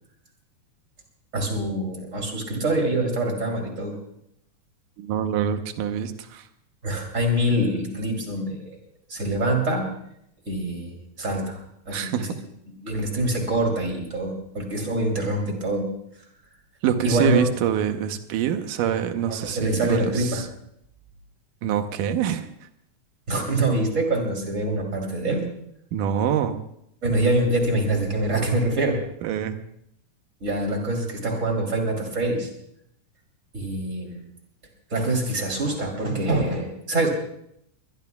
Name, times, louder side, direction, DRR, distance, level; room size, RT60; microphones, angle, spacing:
voice 1, 1.3-4.0 6.8-8.8 9.1-9.9 10.4-11.6 11.8-12.3 12.8-15.9 17.0-17.5 19.3-20.4 23.3-25.4 27.0-29.0 30.4-32.5 33.5-34.2 34.9-37.1, right 1 dB, 25° right, 0 dB, 3.3 m, -25 dB
voice 2, 5.0-6.4 11.9-12.4 16.8-20.4 21.6-22.5 25.9-26.6 29.2-29.6, right 9 dB, 80° right, 7 dB, 2.5 m, -25 dB
22.5 x 21.5 x 2.3 m, 0.76 s
omnidirectional pair, 3.7 m